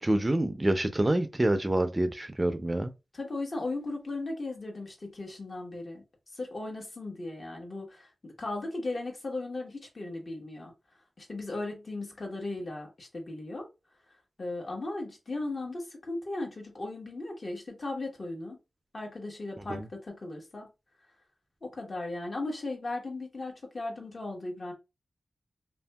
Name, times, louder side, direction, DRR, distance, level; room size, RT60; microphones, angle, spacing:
voice 1, 0.0-2.9 19.7-19.9, right 1 dB, 25° right, 0.4 m, -27 dB
voice 2, 3.1-6.0 6.3-10.7 11.2-13.7 14.4-18.6 18.9-20.7 21.6-24.7, left 2 dB, 50° left, 1.1 m, -37 dB
2.7 x 2.6 x 2.2 m
cardioid pair, 65°, 0 cm